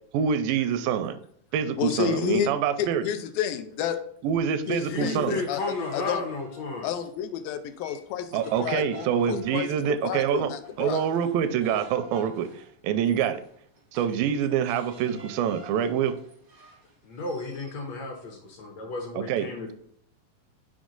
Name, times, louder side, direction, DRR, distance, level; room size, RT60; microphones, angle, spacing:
voice 1, 0.1-1.2 1.5-3.0 4.2-5.4 8.3-10.5 10.8-12.5 12.8-13.4 13.9-16.2 19.2-19.7, right 8 dB, 85° right, 11 dB, 2.2 m, -26 dB
voice 2, 1.8-2.5 2.8-4.0 4.7-6.2 6.8-11.1, left 9 dB, 85° left, 9 dB, 2.3 m, -30 dB
sound 1, 4.6-7.2 7.6-17.8, right 2 dB, 65° right, 0.8 m, -49 dB
voice 3, 4.9-6.9 17.0-19.7, left 3 dB, 65° left, 2 dB, 1.8 m, -33 dB
6.2 x 4.8 x 3.8 m, 0.66 s
omnidirectional pair, 4.1 m